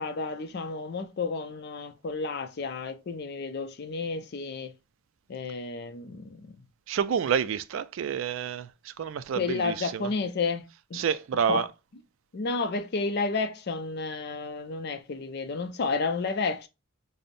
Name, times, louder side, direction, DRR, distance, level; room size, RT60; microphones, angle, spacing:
voice 1, 0.0-4.7 5.3-6.6 9.4-11.0 11.5-11.6 12.3-16.7, left 4 dB, 50° left, 0.5 m, -31 dB
voice 2, 6.9-10.1 10.9-11.7, right 7 dB, 65° right, 0.3 m, -29 dB
5.2 x 2.0 x 2.5 m
head